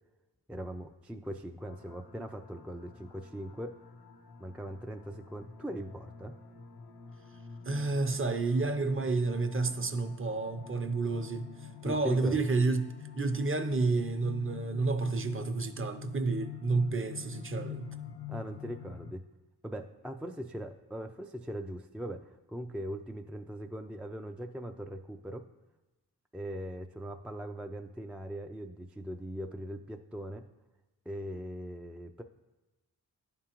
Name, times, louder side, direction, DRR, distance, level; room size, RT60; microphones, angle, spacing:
voice 1, 0.5-3.8 4.4-6.4 11.8-12.4 18.3-19.2 19.6-25.5 26.3-30.5 31.1-32.2, equal, 5° right, 4 dB, 0.3 m, -40 dB
sound 1, 1.6-19.1, left 7 dB, 70° left, 0.7 m, -47 dB
voice 2, 7.7-17.9, right 3 dB, 35° right, 8 dB, 0.7 m, -30 dB
10.5 x 3.7 x 3.0 m, 1.1 s
cardioid pair, 40°, 39 cm